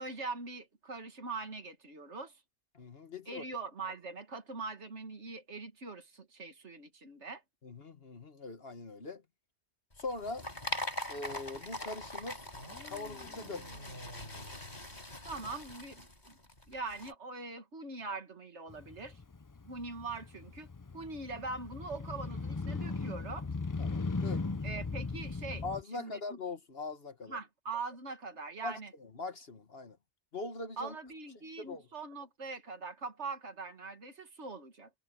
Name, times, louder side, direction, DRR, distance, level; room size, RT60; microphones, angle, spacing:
voice 1, 0.0-2.3 3.3-7.4 15.2-16.4 16.7-19.2 19.6-23.5 24.6-25.6 25.9-26.4 27.3-28.9 30.8-34.9, right 3 dB, 80° right, 2.3 m, -42 dB
voice 2, 2.7-3.4 7.6-9.2 10.0-10.5 11.1-12.4 12.9-13.6 23.8-24.5 25.6-27.4 28.6-30.0 30.3-31.0 31.6-31.9, left 3 dB, 60° left, 1.7 m, -41 dB
sound 1, 9.9-17.1, left 1 dB, 40° left, 4.9 m, -42 dB
sound 2, 12.5-15.7, left 1 dB, 80° left, 3.5 m, -51 dB
Motorcycle, 18.7-25.8, left 3 dB, 25° left, 0.5 m, -38 dB
omnidirectional pair, 1.2 m